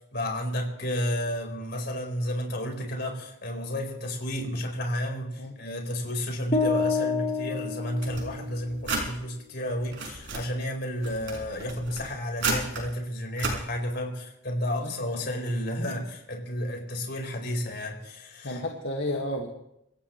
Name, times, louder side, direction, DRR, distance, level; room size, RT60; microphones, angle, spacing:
voice 1, 0.1-18.6, equal, 60° left, 1 dB, 4.5 m, -32 dB
sound 1, 6.5-8.7, left 4 dB, 30° left, 1.3 m, -28 dB
sound 2, 8.0-9.1 9.7-10.5 11.0-12.8 13.4-13.6, right 3 dB, 65° right, 5.8 m, -32 dB
voice 2, 14.8-15.3 18.4-19.5, left 1 dB, 75° left, 0 dB, 1.9 m, -32 dB
26.5 x 15.5 x 3.2 m, 0.83 s
head